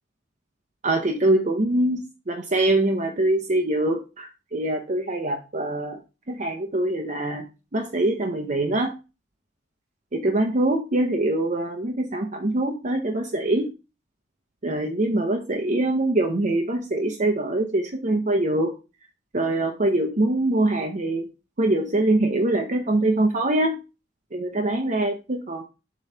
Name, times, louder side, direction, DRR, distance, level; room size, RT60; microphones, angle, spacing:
voice 1, 0.8-6.0 6.3-7.4 7.7-8.9 10.1-13.7 14.6-18.7 19.3-21.3 21.6-23.8 24.3-25.6, right 1 dB, 40° right, 3 dB, 0.7 m, -23 dB
7.4 x 3.1 x 5.5 m, 0.30 s
head